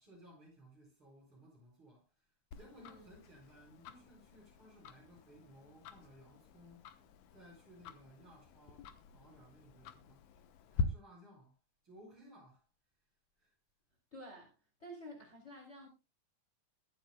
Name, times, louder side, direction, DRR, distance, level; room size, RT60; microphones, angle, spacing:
voice 1, 0.0-11.6 11.8-12.7 13.4-13.5, equal, 40° right, 9.0 m, -60 dB
Tick-tock, 2.5-10.8, left 5 dB, 75° left, 2.5 m, -45 dB
voice 2, 2.7-3.1 14.1-14.5 14.8-15.9, equal, 20° left, 3.4 m, -51 dB
22.5 x 8.8 x 2.2 m
omnidirectional pair, 3.5 m